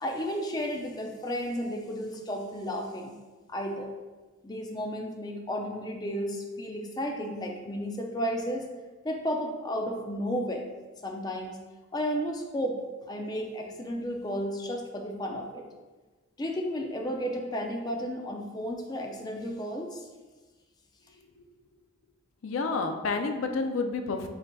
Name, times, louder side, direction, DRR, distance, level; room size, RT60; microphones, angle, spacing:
voice 1, 0.0-3.1 3.5-3.9 4.4-8.7 9.0-10.7 11.0-11.6 11.9-12.8 13.1-15.7 16.4-20.1, equal, 20° left, 2 dB, 0.4 m, -33 dB
voice 2, 22.4-24.3, left 3 dB, 80° left, 6 dB, 0.4 m, -29 dB
5.5 x 3.9 x 2.3 m, 1.3 s
head